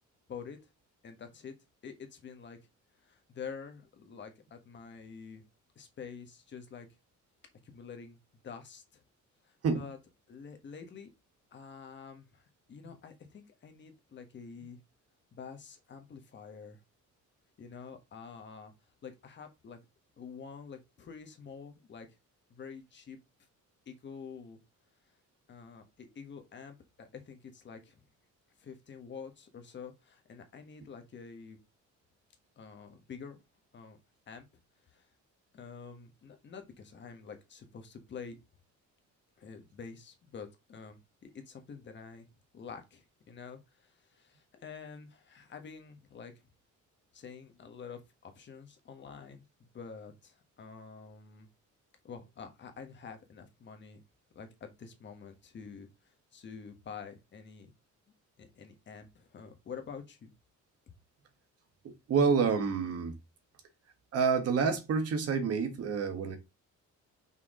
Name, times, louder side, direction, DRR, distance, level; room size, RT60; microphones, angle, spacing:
voice 1, 1.0-1.5 1.8-2.6 3.0-5.4 5.7-6.9 7.6-8.2 8.4-9.0 9.4-10.0 10.3-11.1 11.5-14.8 15.3-16.8 17.6-18.7 19.0-19.8 20.2-22.1 22.5-23.2 23.8-24.6 25.5-28.0 28.6-31.6 32.6-33.4 33.7-34.0 34.3-34.4 34.9-35.1 35.5-38.4 39.4-42.3 42.5-46.3 47.1-51.5 52.0-54.0 54.3-57.7 58.4-60.3, left 6 dB, 35° left, 1.4 m, -47 dB
voice 2, 61.8-63.2 64.1-66.4, right 5 dB, 50° right, 1.4 m, -28 dB
5.8 x 4.6 x 3.7 m
cardioid pair, 175°, 31 cm